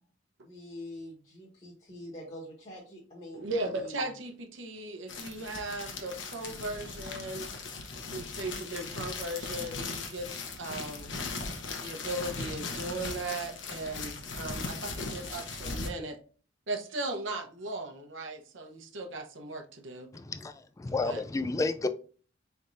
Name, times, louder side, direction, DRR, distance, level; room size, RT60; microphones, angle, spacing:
voice 1, 0.4-3.4 3.7-4.1, left 1 dB, 35° left, 1.0 m, -45 dB
voice 2, 3.3-7.5 8.1-10.3 10.6-11.1 11.8-16.2 16.7-20.1 21.0-21.2, right 2 dB, 80° right, 0.8 m, -37 dB
sound 1, 5.1-15.9, left 4 dB, 75° left, 0.9 m, -38 dB
voice 3, 20.1-21.9, left 3 dB, 15° left, 0.3 m, -31 dB
4.3 x 3.4 x 2.6 m
head